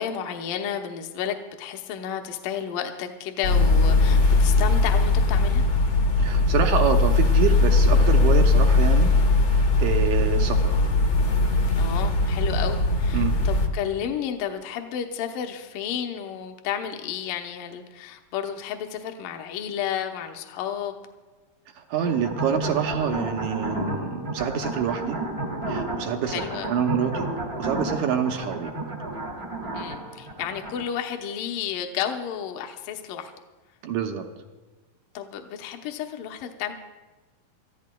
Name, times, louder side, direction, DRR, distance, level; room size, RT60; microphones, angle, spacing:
voice 1, 0.0-5.6 11.8-21.0 26.3-26.8 29.7-33.3 35.1-36.7, left 9 dB, 75° left, 4 dB, 2.3 m, -32 dB
sound 1, 3.4-13.7, left 3 dB, 60° left, 1.3 m, -20 dB
voice 2, 6.2-9.1 9.5-10.8 13.1-13.4 21.8-25.2 25.7-26.4 26.7-27.3 27.6-28.7 33.8-34.3, right 7 dB, 75° right, 5 dB, 1.8 m, -26 dB
sound 2, 22.0-30.9, right 2 dB, 45° right, 0.8 m, -32 dB
27.5 x 14.5 x 2.3 m, 1.2 s
omnidirectional pair, 4.2 m